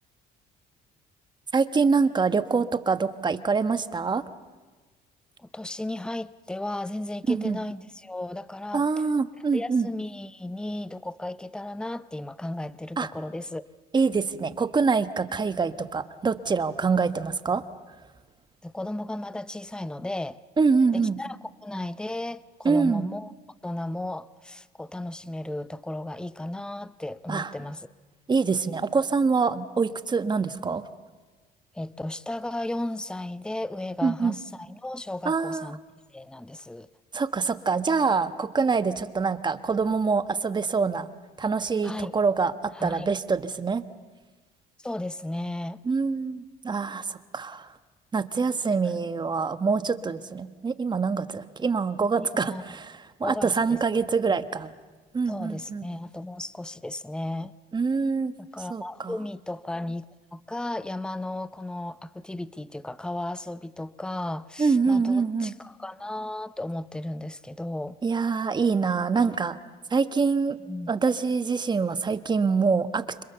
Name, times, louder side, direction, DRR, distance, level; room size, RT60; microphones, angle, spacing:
voice 1, 1.5-4.2 7.3-7.6 8.7-9.9 13.0-13.1 13.9-17.6 20.6-21.2 22.6-23.0 27.3-27.5 28.3-30.8 34.0-34.4 35.2-35.7 37.1-41.1 41.4-43.8 45.8-47.7 48.1-54.7 55.1-55.9 57.7-58.3 58.7-59.1 64.6-65.5 68.0-69.6 69.9-70.6 70.9-73.2, right 4 dB, 25° right, 11 dB, 1.3 m, -25 dB
voice 2, 5.4-8.9 9.5-13.6 18.6-20.4 20.9-23.3 23.6-27.9 31.7-35.8 36.1-36.9 41.8-42.1 42.7-43.1 44.8-45.8 48.9-49.0 52.2-52.6 53.2-53.8 54.3-54.4 55.3-57.5 58.4-60.1 60.3-68.0 70.6-70.9, left 1 dB, 5° left, 15 dB, 0.8 m, -35 dB
30.0 x 26.5 x 6.9 m, 1.3 s
cardioid pair, 110°, 17 cm